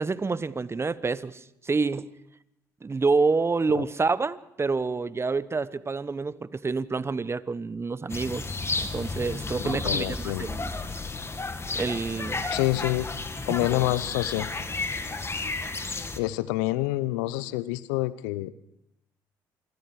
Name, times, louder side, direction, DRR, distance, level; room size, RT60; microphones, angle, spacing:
voice 1, 0.0-2.1 2.8-10.7 11.7-12.4, right 4 dB, 25° right, 17 dB, 1.0 m, -28 dB
sound 1, 8.1-16.2, left 3 dB, 25° left, 2.2 m, -32 dB
voice 2, 9.6-10.5 12.5-13.0 13.5-14.5 16.2-18.5, left 18 dB, 80° left, 18 dB, 0.8 m, -27 dB
27.0 x 21.5 x 4.9 m, 0.81 s
hypercardioid pair, 50°, 10 cm